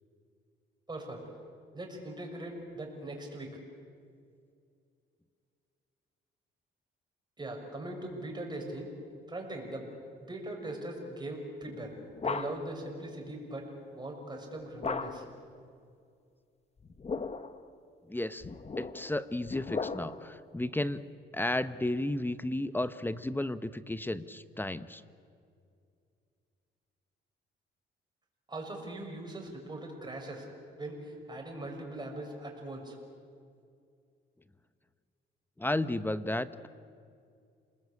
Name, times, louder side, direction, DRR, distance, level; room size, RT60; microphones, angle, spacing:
voice 1, 0.9-1.2 1.7-3.6 7.4-8.9 9.3-9.9 10.2-11.9 12.2-15.3 28.5-30.5 30.8-33.0, right 1 dB, 20° right, 1 dB, 6.4 m, -40 dB
sound 1, 11.6-12.8 14.8-15.4 16.8-17.6 18.4-20.4, left 4 dB, 30° left, 1.2 m, -37 dB
voice 2, 18.1-18.4 18.8-25.0 35.6-36.7, left 1 dB, 10° left, 13 dB, 0.9 m, -33 dB
28.5 x 20.0 x 8.6 m, 2.4 s
cardioid pair, 90°, 20 cm